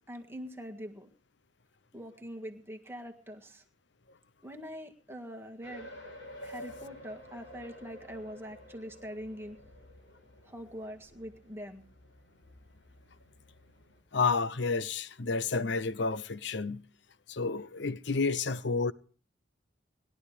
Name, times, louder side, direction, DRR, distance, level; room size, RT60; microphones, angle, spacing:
voice 1, 0.1-1.1 1.9-3.6 4.4-5.9 6.4-9.6 10.4-11.8, equal, 15° right, 1.8 m, -43 dB
sound 1, 5.6-14.0, left 1 dB, 90° left, 7.5 m, -50 dB
voice 2, 14.1-16.8 17.3-18.9, left 4 dB, 70° left, 0.7 m, -30 dB
20.5 x 12.0 x 5.0 m
head